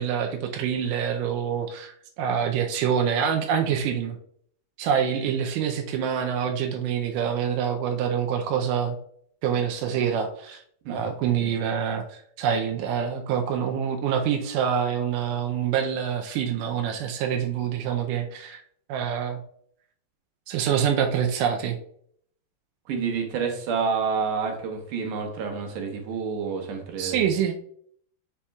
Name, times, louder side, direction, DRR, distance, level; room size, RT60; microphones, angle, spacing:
voice 1, 0.0-4.2 4.8-9.0 9.4-10.6 10.9-18.6 18.9-19.4 20.5-21.8 27.0-27.5, right 8 dB, 85° right, 3 dB, 1.8 m, -26 dB
voice 2, 22.9-27.3, right 5 dB, 65° right, 3 dB, 2.2 m, -29 dB
9.7 x 4.3 x 2.3 m, 0.64 s
omnidirectional pair, 4.5 m